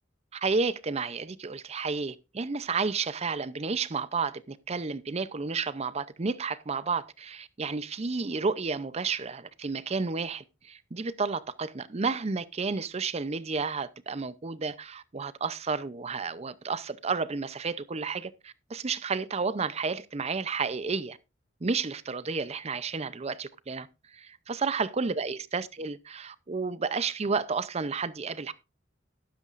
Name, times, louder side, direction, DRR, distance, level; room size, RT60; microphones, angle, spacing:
voice 1, 0.3-21.2 21.6-28.5, right 4 dB, 35° right, 0.6 m, -31 dB
12.5 x 11.5 x 2.5 m
head